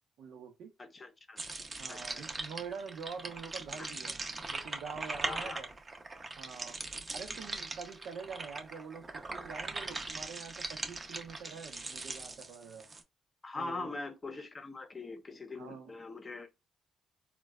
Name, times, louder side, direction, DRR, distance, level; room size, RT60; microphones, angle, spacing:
voice 1, 0.2-0.7 1.8-4.2 4.5-5.7 6.4-6.8 7.1-12.9 13.6-13.9 15.6-15.9, right 6 dB, 75° right, 0.6 m, -45 dB
voice 2, 0.8-1.4 1.9-2.2 3.8-3.9 5.2-5.6 13.4-16.5, left 3 dB, 30° left, 0.6 m, -42 dB
sound 1, 1.4-13.0, right 3 dB, 30° right, 0.6 m, -41 dB
3.8 x 2.2 x 2.3 m
cardioid pair, 90°, 0 cm